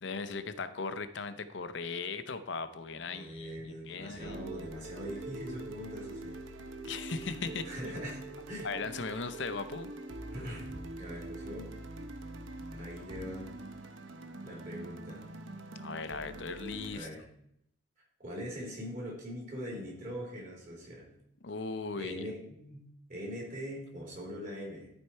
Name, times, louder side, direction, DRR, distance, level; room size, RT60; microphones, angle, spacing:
voice 1, 0.0-4.5 6.8-7.9 8.6-9.9 15.8-17.1 21.4-22.1, left 4 dB, 65° left, 12 dB, 0.6 m, -38 dB
voice 2, 3.1-6.4 7.6-8.7 10.3-11.7 12.7-13.5 14.4-15.3 16.9-17.3 18.2-21.1 21.9-22.8 23.1-24.9, equal, 45° right, -3 dB, 3.4 m, -42 dB
sound 1, 4.2-16.9, right 2 dB, 75° right, 0.8 m, -44 dB
12.5 x 4.4 x 4.6 m, 0.74 s
head